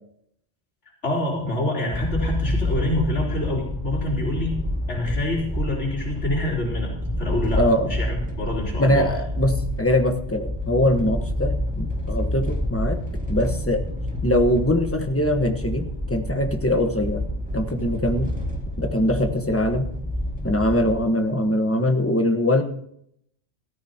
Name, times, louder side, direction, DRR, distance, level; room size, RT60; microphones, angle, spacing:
voice 1, 1.0-4.6 4.9-9.1, left 1 dB, 75° left, -4 dB, 3.9 m, -27 dB
sound 1, 1.9-21.0, left 1 dB, 5° right, 2.1 m, -28 dB
voice 2, 7.6-7.9 8.8-13.0 13.3-13.8 14.2-17.2 17.5-18.3 18.8-19.9 20.4-22.6, left 1 dB, 10° left, 4 dB, 1.2 m, -22 dB
16.5 x 13.5 x 2.9 m, 0.71 s
omnidirectional pair, 1.2 m